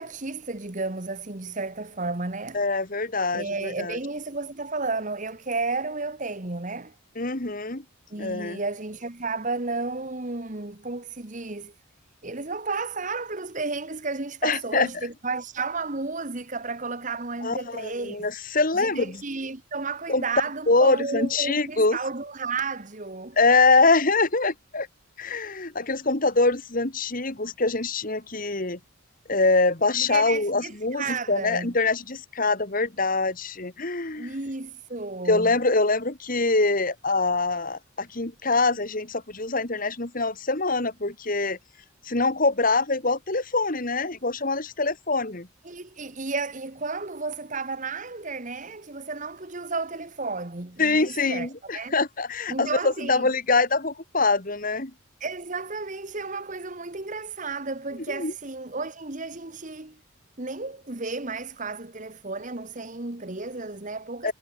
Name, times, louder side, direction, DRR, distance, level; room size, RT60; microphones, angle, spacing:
voice 1, 0.0-2.6 3.3-6.9 8.1-11.7 12.2-18.3 18.7-23.4 30.0-31.7 34.2-35.5 45.6-51.9 52.5-53.3 55.2-60.0 60.4-64.3, right 3 dB, 35° right, 1.5 m, -32 dB
voice 2, 2.5-4.0 7.2-7.8 8.2-8.6 14.4-14.9 17.4-19.2 20.1-20.2 20.7-22.0 23.4-24.9 25.2-28.8 29.3-34.3 35.3-41.6 42.0-45.5 50.8-54.9 58.1-58.3 64.2-64.3, left 3 dB, 40° left, 2.2 m, -24 dB
head